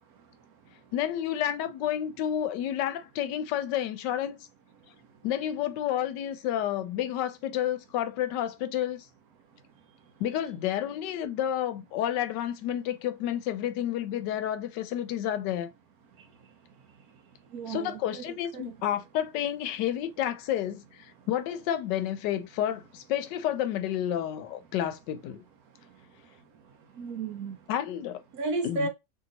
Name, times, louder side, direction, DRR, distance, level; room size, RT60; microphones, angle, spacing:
voice 1, 0.9-4.4 5.2-9.1 10.2-15.7 17.7-25.4 27.7-28.2 28.6-28.9, left 11 dB, 80° left, 1.2 m, -30 dB
voice 2, 17.5-18.7 27.0-27.6 28.3-28.9, right 3 dB, 65° right, 1.0 m, -33 dB
2.9 x 2.9 x 3.9 m
omnidirectional pair, 1.9 m